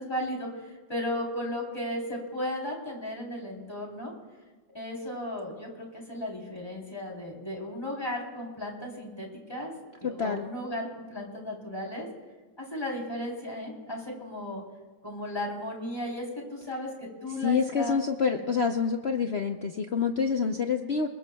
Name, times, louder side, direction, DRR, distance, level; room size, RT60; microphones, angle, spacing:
voice 1, 0.0-4.1 4.7-9.7 10.0-12.1 12.6-14.6 15.0-18.0 18.3-18.4 20.4-20.5, left 1 dB, 10° left, -2 dB, 3.5 m, -35 dB
voice 2, 10.0-10.5 17.4-21.1, left 5 dB, 85° left, 4 dB, 0.5 m, -27 dB
28.0 x 21.0 x 2.3 m, 1.3 s
omnidirectional pair, 2.1 m